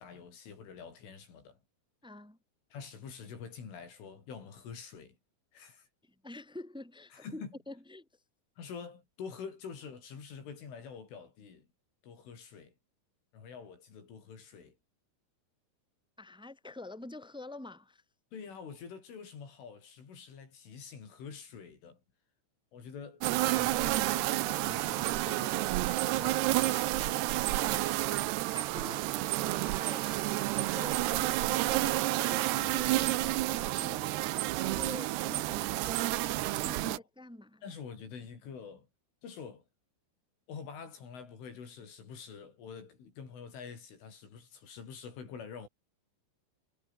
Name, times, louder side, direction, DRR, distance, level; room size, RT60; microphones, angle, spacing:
voice 1, 0.0-1.6 2.7-5.2 5.5-5.9 7.1-7.5 8.6-11.7 12.0-12.7 13.3-14.8 18.3-22.0 22.7-27.3 28.8-29.0 36.3-37.0 37.6-38.9 39.2-39.6 40.5-45.7, left 6 dB, 85° left, 8.4 m, -47 dB
voice 2, 2.0-2.4 6.0-8.1 16.2-18.0 28.5-29.3 29.5-37.6, left 2 dB, ahead, 1.9 m, -47 dB
sound 1, 23.2-37.0, right 17 dB, 75° right, 2.7 m, -30 dB
omnidirectional pair, 5.5 m